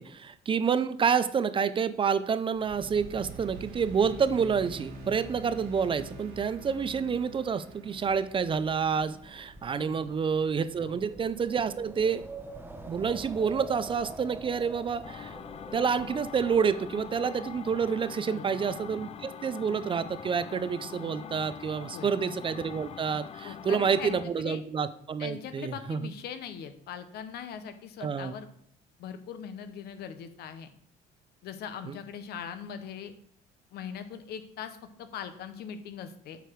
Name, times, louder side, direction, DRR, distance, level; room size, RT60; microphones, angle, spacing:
voice 1, 0.0-12.2 12.9-15.4 15.7-26.1 28.0-28.3 31.8-31.9, right 6 dB, 30° right, 13 dB, 0.4 m, -28 dB
sound 1, 2.5-13.0, right 2 dB, 80° right, 3.0 m, -47 dB
Wind, 8.0-18.1, right 2 dB, 10° right, 1.0 m, -46 dB
voice 2, 9.7-10.1 10.8-11.0 18.2-18.6 21.9-22.1 23.4-24.6 25.2-28.5 29.0-30.7 31.4-33.1 33.7-36.4, left 8 dB, 70° left, 10 dB, 0.9 m, -41 dB
sound 2, 15.0-24.3, left 8 dB, 35° left, 0.4 m, -43 dB
7.9 x 4.9 x 4.6 m, 0.65 s
cardioid pair, 110°, 17 cm